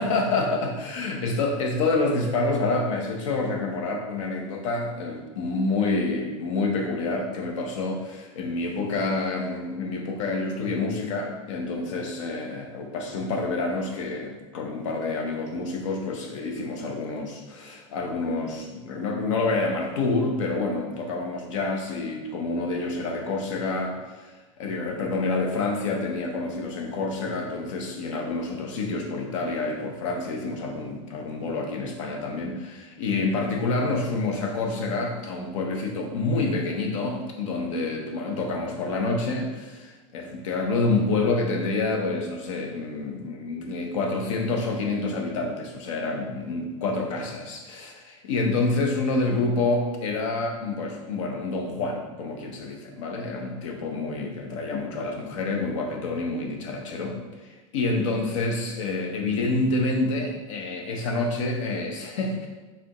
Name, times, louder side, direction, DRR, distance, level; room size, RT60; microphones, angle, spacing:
voice 1, 0.0-62.5, left 3 dB, 80° left, 2 dB, 0.9 m, -28 dB
5.0 x 3.4 x 3.0 m, 1.2 s
supercardioid pair, 160°, 16 cm